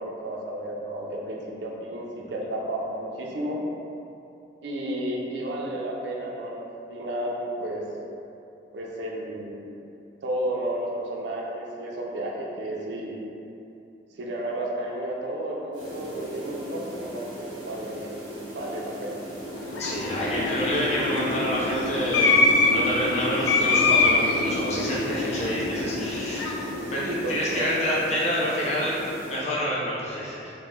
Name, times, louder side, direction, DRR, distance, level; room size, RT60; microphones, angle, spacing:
voice 1, 0.0-3.6 4.6-7.9 8.7-9.7 10.2-13.2 14.1-18.2 18.5-19.2 27.0-27.7, right 1 dB, 70° right, -2 dB, 0.4 m, -32 dB
sound 1, 15.7-29.5, right 1 dB, 25° right, 0.6 m, -39 dB
sound 2, 19.4-27.9, left 3 dB, 80° left, 0.3 m, -25 dB
voice 2, 19.8-26.4 26.8-29.0 29.2-30.5, equal, 35° left, -7 dB, 0.6 m, -28 dB
2.9 x 2.1 x 3.5 m, 2.8 s
head